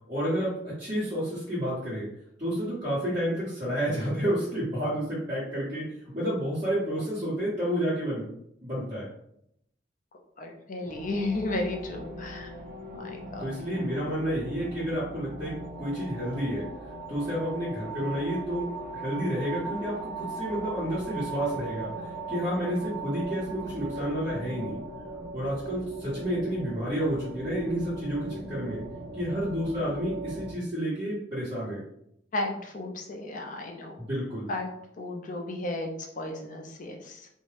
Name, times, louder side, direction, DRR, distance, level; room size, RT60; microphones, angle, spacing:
voice 1, 0.1-2.1 2.4-8.3 8.6-9.1 13.4-16.7 17.1-24.8 25.3-28.8 29.1-31.8 34.0-34.5, equal, 25° right, -14 dB, 1.2 m, -30 dB
voice 2, 10.4-12.5 12.9-13.5 32.3-34.0 34.5-34.7 35.0-37.3, left 2 dB, 45° left, 2 dB, 0.5 m, -34 dB
sound 1, 10.9-30.5, right 2 dB, 60° right, 0.6 m, -39 dB
2.6 x 2.2 x 3.2 m, 0.74 s
head